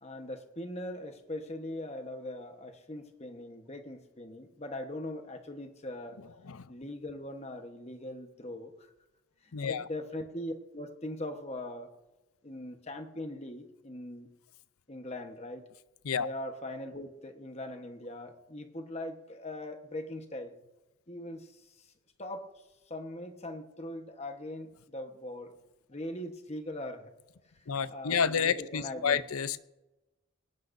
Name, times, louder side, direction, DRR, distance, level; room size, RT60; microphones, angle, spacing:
voice 1, 0.0-6.2 6.7-8.7 9.4-11.9 12.4-14.3 14.9-15.6 16.2-20.5 21.1-21.9 22.2-25.5 25.9-27.1 27.9-29.2, left 1 dB, 30° left, 1.2 m, -41 dB
voice 2, 9.5-9.9 16.0-16.3 27.7-29.6, left 7 dB, 85° left, 0.6 m, -30 dB
21.0 x 18.0 x 2.7 m
head